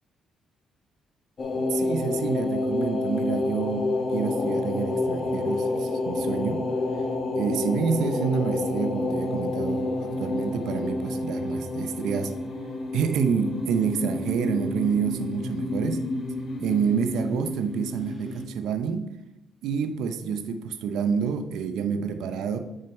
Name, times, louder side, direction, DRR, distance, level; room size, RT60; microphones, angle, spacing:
sound 1, 1.4-18.4, left 2 dB, 40° left, 1.6 m, -29 dB
voice 1, 1.7-6.6 7.4-12.3 12.9-16.0 16.6-19.1 19.6-22.6, right 6 dB, 85° right, 9 dB, 0.7 m, -28 dB
8.8 x 6.5 x 4.4 m, 0.93 s
cardioid pair, 90°, 0 cm